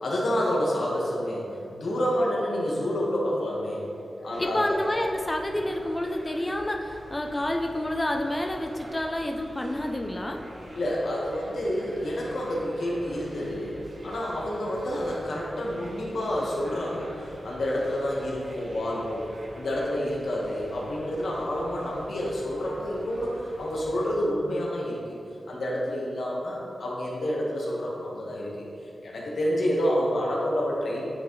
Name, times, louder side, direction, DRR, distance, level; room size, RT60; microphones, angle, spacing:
voice 1, 0.0-3.9 4.2-4.8 10.7-25.0 25.5-28.7 29.0-31.0, equal, 80° left, -4 dB, 1.4 m, -29 dB
sound 1, 4.3-24.2, equal, 55° right, 1.3 m, -46 dB
voice 2, 4.4-10.4, left 1 dB, 20° left, 3 dB, 0.5 m, -29 dB
9.7 x 4.5 x 3.2 m, 2.7 s
wide cardioid pair, 80°, 0 cm